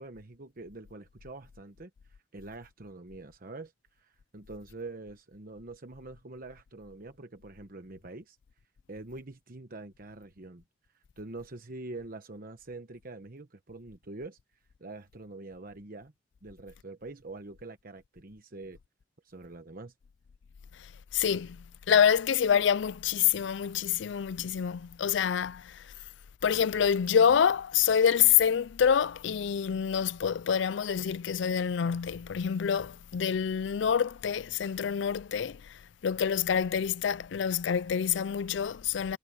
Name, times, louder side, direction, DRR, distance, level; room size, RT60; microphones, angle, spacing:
voice 1, 0.0-1.9 2.3-8.4 8.9-10.6 10.9-14.4 14.8-16.1 16.4-18.8 19.2-19.9, right 2 dB, 50° right, 1.1 m, -45 dB
voice 2, 21.1-25.8 26.4-39.2, left 8 dB, 65° left, 0.4 m, -27 dB
head